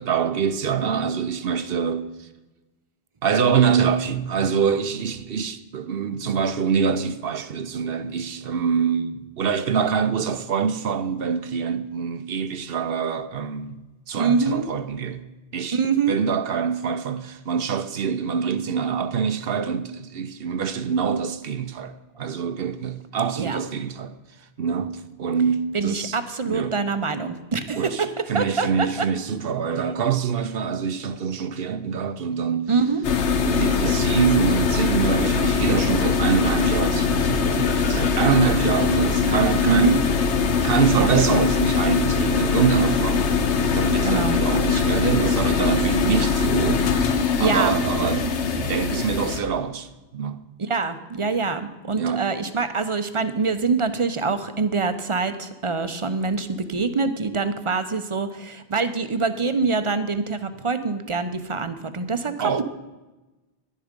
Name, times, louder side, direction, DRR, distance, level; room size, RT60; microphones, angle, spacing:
voice 1, 0.0-2.3 3.2-13.8 14.1-15.2 15.5-15.8 16.1-24.1 24.6-26.2 26.5-26.7 27.8-32.7 33.4-40.0 40.6-46.9 47.4-50.4 52.0-52.3 62.4-62.6, right 6 dB, 60° right, 0.9 m, -25 dB
voice 2, 14.2-14.7 15.7-16.2 23.4-23.6 25.7-29.1 32.7-33.0 39.7-40.0 41.0-41.1 44.0-44.4 47.4-47.8 50.6-62.6, right 4 dB, 35° right, 0.7 m, -24 dB
sound 1, 33.0-49.4, left 5 dB, 90° left, 1.2 m, -22 dB
11.5 x 10.0 x 5.2 m
omnidirectional pair, 1.1 m